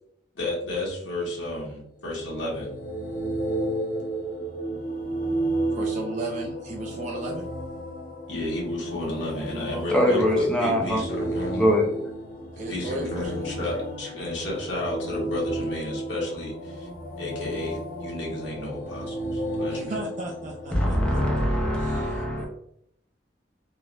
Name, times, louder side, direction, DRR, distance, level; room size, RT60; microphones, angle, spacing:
voice 1, 0.3-2.7 8.3-11.7 12.7-16.9 17.2-20.0, left 1 dB, 80° left, -3 dB, 1.1 m, -32 dB
sound 1, 2.0-20.8, right 1 dB, 55° left, 0.7 m, -33 dB
voice 2, 5.7-7.5 9.7-9.9 12.6-13.8 19.7-21.2 21.8-22.5, right 2 dB, 40° right, 1 dB, 0.3 m, -36 dB
voice 3, 9.9-11.0 11.5-11.9 20.7-22.5, equal, 5° left, -1 dB, 0.6 m, -23 dB
3.2 x 2.1 x 2.4 m, 0.72 s
head